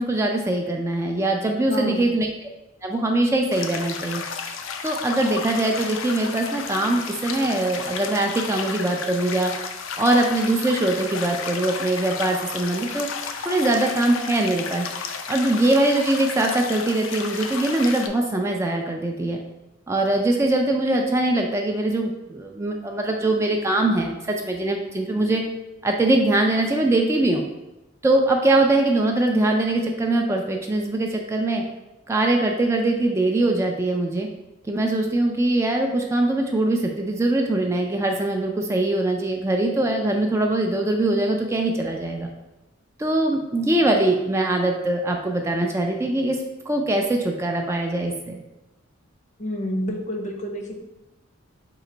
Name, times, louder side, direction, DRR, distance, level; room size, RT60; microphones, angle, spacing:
voice 1, 0.0-2.3 2.8-4.2 4.8-9.5 10.0-13.1 13.5-14.9 15.3-19.4 19.9-25.4 25.8-27.4 28.0-31.6 32.1-34.3 34.6-42.3 43.0-46.4 46.7-48.3, right 2 dB, 15° right, 2 dB, 0.3 m, -22 dB
voice 2, 1.7-2.1 49.4-50.8, equal, 40° left, 2 dB, 0.6 m, -29 dB
sound 1, 3.5-18.1, left 5 dB, 90° left, 0.4 m, -32 dB
3.8 x 2.9 x 4.3 m, 0.98 s
head